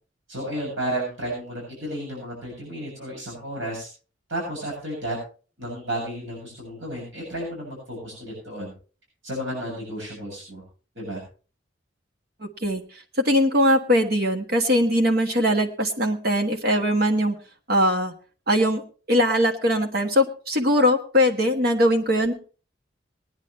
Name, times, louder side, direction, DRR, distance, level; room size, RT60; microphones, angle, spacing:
voice 1, 0.3-3.9 4.3-5.2 5.6-8.7 9.2-10.6 11.0-11.2, right 1 dB, 90° right, -2 dB, 7.4 m, -32 dB
voice 2, 12.4-12.8 13.2-17.3 17.7-18.1 18.5-18.8 19.1-22.3, equal, 55° right, 4 dB, 1.5 m, -21 dB
20.5 x 10.5 x 3.2 m, 0.37 s
head